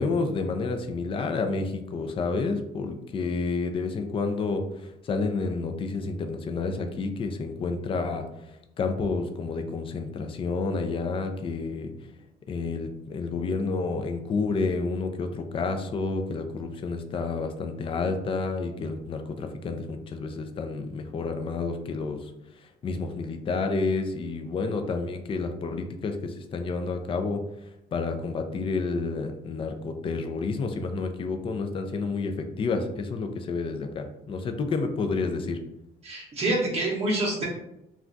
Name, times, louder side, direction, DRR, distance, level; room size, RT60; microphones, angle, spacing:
voice 1, 0.0-8.3 8.8-11.9 12.5-22.3 22.6-27.4 27.9-35.6, left 4 dB, 30° left, 6 dB, 0.4 m, -30 dB
voice 2, 36.0-37.5, right 2 dB, 35° right, -4 dB, 0.8 m, -26 dB
2.3 x 2.3 x 3.8 m, 0.86 s
cardioid pair, 110°, 17 cm